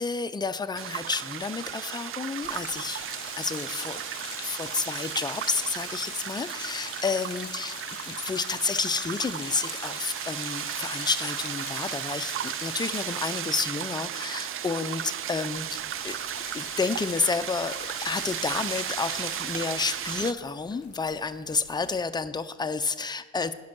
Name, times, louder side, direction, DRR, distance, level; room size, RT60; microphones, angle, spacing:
voice 1, 0.0-3.0 3.3-4.0 4.4-7.8 8.1-16.2 16.5-23.5, left 4 dB, 15° left, 10 dB, 0.4 m, -30 dB
sound 1, 0.8-20.3, right 10 dB, 45° right, 0.4 m, -35 dB
sound 2, 2.4-14.8 15.1-15.3 15.5-22.0, left 9 dB, 50° left, 0.7 m, -44 dB
sound 3, 15.2-22.0, right 1 dB, 65° right, 1.9 m, -58 dB
10.0 x 5.4 x 6.0 m, 1.3 s
cardioid pair, 90°, 30 cm